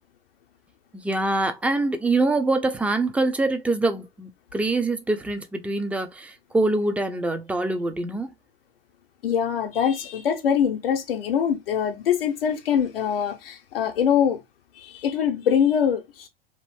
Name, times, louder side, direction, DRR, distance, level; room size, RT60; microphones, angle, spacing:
voice 1, 0.9-8.3, right 2 dB, 5° right, 0.4 m, -24 dB
voice 2, 9.2-14.4 14.8-16.3, left 8 dB, 70° left, 0.6 m, -23 dB
2.6 x 2.5 x 3.3 m
figure-of-eight pair, 80°, 30 cm